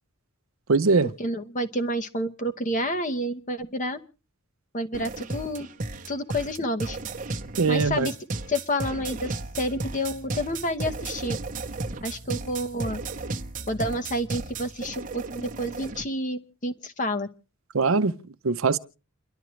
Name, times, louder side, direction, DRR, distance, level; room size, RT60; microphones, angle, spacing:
voice 1, 0.7-1.1 7.6-8.1 17.7-18.1 18.4-18.8, right 4 dB, 65° right, 0.7 m, -21 dB
voice 2, 1.2-4.0 4.7-5.7 6.1-7.0 7.7-8.1 8.5-11.4 12.0-13.0 13.7-17.3, equal, 35° left, 1.1 m, -29 dB
sound 1, 4.9-16.0, right 3 dB, 35° right, 0.9 m, -34 dB
29.5 x 11.5 x 3.1 m
head